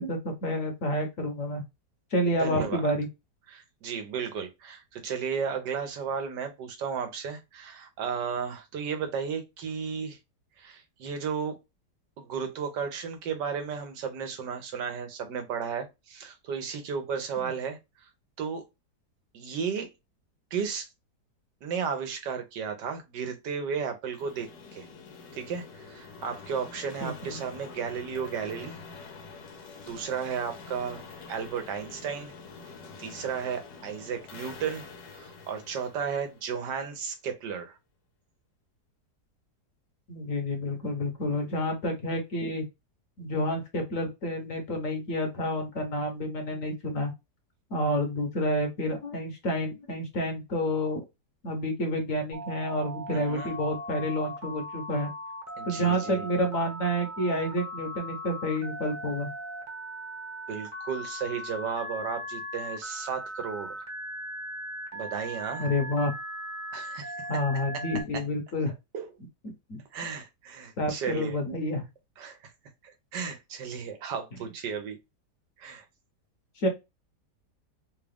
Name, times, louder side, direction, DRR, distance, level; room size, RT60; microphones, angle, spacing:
voice 1, 0.0-1.6 2.1-3.1 27.0-27.4 40.1-42.6 43.2-47.1 47.7-51.0 51.4-55.1 55.6-59.3 65.6-66.1 67.3-68.7 69.7-69.8 70.8-71.9 76.6-76.7, equal, 55° left, 1.3 m, -29 dB
voice 2, 2.4-2.9 3.5-10.2 10.6-11.6 12.2-17.8 18.4-18.6 19.3-19.9 20.5-20.9 21.6-24.9 25.3-28.8 29.8-31.0 31.3-32.3 33.0-34.8 35.2-37.7 53.1-53.5 55.6-56.3 60.5-63.8 64.9-65.7 66.7-67.1 68.9-69.1 69.9-71.4 72.2-72.4 73.1-75.0 75.6-75.8, right 6 dB, 80° right, 1.5 m, -34 dB
sound 1, 24.1-37.0, left 4 dB, 90° left, 1.5 m, -46 dB
Telephone, 52.3-68.0, equal, 15° right, 0.8 m, -39 dB
3.7 x 2.4 x 3.4 m
omnidirectional pair, 1.8 m